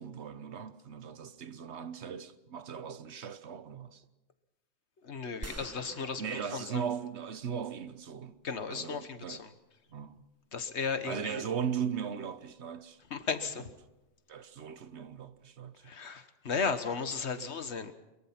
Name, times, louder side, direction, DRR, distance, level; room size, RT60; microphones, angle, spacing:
voice 1, 0.0-4.0 6.2-8.4 8.7-9.4 9.9-10.2 11.0-13.0 14.3-16.0 17.3-17.5, right 7 dB, 70° right, 1.2 m, -38 dB
voice 2, 5.0-6.8 8.4-9.5 10.5-11.4 13.1-13.7 15.8-17.9, left 5 dB, 70° left, 1.6 m, -35 dB
sound 1, 5.4-7.7, right 2 dB, 15° right, 0.8 m, -48 dB
23.0 x 22.5 x 5.9 m
omnidirectional pair, 1.2 m